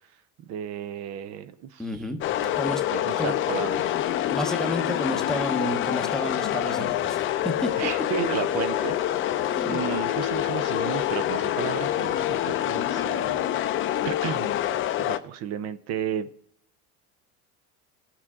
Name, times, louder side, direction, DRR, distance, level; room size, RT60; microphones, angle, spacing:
voice 1, 0.4-2.0 2.4-4.0 7.7-9.0 9.3-13.3 14.0-14.6 15.0-16.3, right 9 dB, 50° right, 0.7 m, -33 dB
voice 2, 1.8-2.2 2.6-2.8 3.2-3.3 4.3-7.3 7.6-7.7 9.4-9.8, left 1 dB, ahead, 0.8 m, -31 dB
sound 1, 2.2-15.2, left 12 dB, 35° left, 0.6 m, -26 dB
20.5 x 7.2 x 3.6 m
cardioid pair, 150°, 34 cm